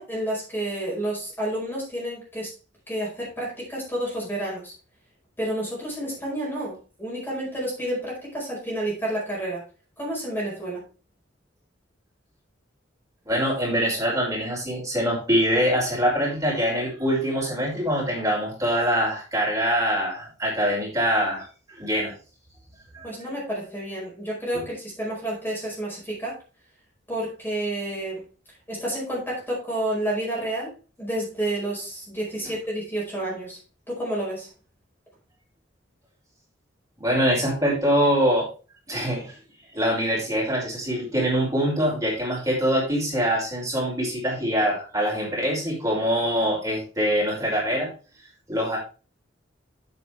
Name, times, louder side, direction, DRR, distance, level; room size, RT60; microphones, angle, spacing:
voice 1, 0.0-2.5 2.9-4.7 5.4-9.6 10.0-10.8 23.0-26.4 27.1-28.2 28.7-30.7 31.0-33.6 33.9-34.5, right 1 dB, 10° left, -5 dB, 5.1 m, -30 dB
voice 2, 13.3-22.1 22.9-23.1 24.5-24.6 37.0-38.5 38.9-39.4 39.7-47.9 48.5-48.8, equal, 20° right, -4 dB, 5.7 m, -24 dB
9.0 x 8.7 x 3.4 m, 0.35 s
head